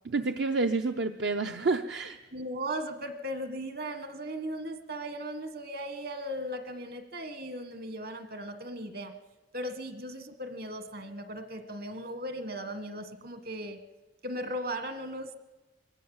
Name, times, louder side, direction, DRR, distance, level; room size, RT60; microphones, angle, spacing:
voice 1, 0.0-2.2, right 3 dB, 70° right, 6 dB, 0.7 m, -29 dB
voice 2, 2.3-9.1 9.5-13.8 14.2-15.4, right 1 dB, 55° right, 9 dB, 1.5 m, -37 dB
22.5 x 17.5 x 7.2 m, 1.2 s
head